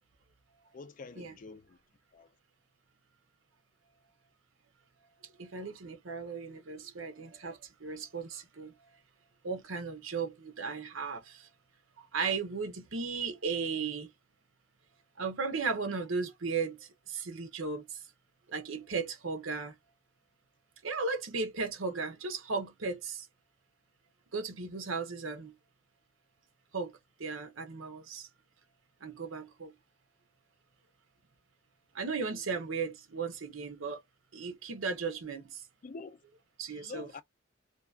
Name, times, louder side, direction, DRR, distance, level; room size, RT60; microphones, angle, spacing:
voice 1, 0.7-1.8 2.1-2.3 32.3-32.6 35.8-36.2 36.7-37.2, left 4 dB, 40° left, 0.4 m, -47 dB
voice 2, 5.4-8.7 9.4-11.5 12.0-14.1 15.2-18.0 18.5-19.8 20.8-23.3 24.3-25.6 26.7-28.3 29.0-29.7 31.9-34.0 34.3-35.6 36.6-37.1, right 4 dB, 85° right, 0.9 m, -36 dB
2.8 x 2.3 x 2.2 m
head